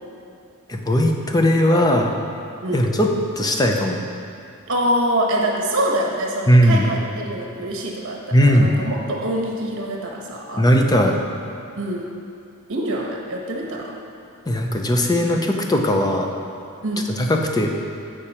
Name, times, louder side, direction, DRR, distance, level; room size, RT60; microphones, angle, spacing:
voice 1, 0.7-2.1 2.7-4.0 6.5-6.9 8.3-8.7 10.6-11.2 14.5-16.3 17.2-17.9, equal, 15° left, 2 dB, 0.5 m, -18 dB
voice 2, 4.7-10.7 11.8-12.1 12.7-14.0 16.8-17.1, right 1 dB, 60° right, -1 dB, 1.1 m, -25 dB
8.5 x 5.0 x 4.3 m, 2.6 s
head